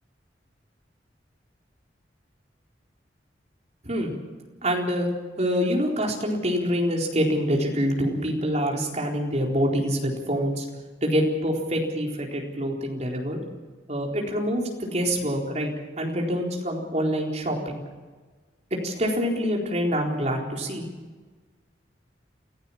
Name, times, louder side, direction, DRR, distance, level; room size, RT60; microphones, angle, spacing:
voice 1, 4.6-5.1 5.4-10.6 11.0-13.4 13.9-17.8 18.8-20.9, equal, 40° right, 0 dB, 4.2 m, -26 dB
27.5 x 15.0 x 7.3 m, 1.4 s
head